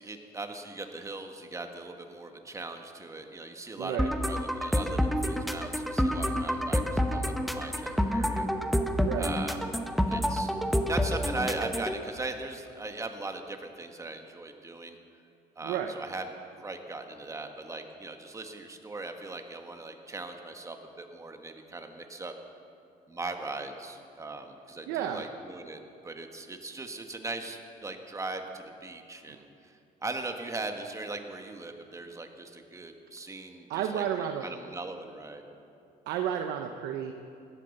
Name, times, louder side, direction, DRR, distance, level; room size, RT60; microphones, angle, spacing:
voice 1, 0.0-8.5 9.2-9.6 10.1-10.5 10.9-15.0 15.6-16.2 16.6-22.3 23.1-29.7 30.0-35.4, right 3 dB, 20° right, 5 dB, 1.5 m, -39 dB
voice 2, 3.8-4.1 9.0-9.3 15.6-15.9 24.9-25.3 29.3-29.4 33.7-34.5 36.1-37.1, right 9 dB, 90° right, 5 dB, 0.8 m, -32 dB
sound 1, 4.0-12.0, equal, ahead, 0.9 m, -28 dB
17.0 x 12.5 x 6.6 m, 2.6 s
cardioid pair, 110°, 17 cm